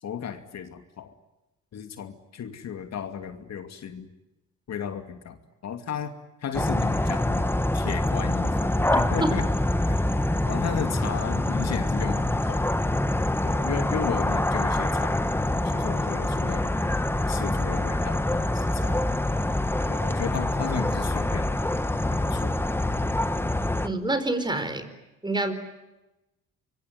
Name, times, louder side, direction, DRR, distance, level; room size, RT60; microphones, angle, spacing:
voice 1, 0.0-1.1 1.7-4.1 4.7-5.4 5.6-6.1 6.4-9.5 9.8-10.1 10.5-12.7 13.4-16.7 17.3-19.1 19.9-21.6 22.1-22.6, left 7 dB, 60° left, 8 dB, 2.7 m, -34 dB
sound 1, 6.5-23.9, left 1 dB, 5° left, 1.5 m, -25 dB
voice 2, 23.8-24.9 25.2-25.5, right 2 dB, 15° right, 10 dB, 4.5 m, -26 dB
25.5 x 23.5 x 9.3 m, 0.98 s
cardioid pair, 90°, 30 cm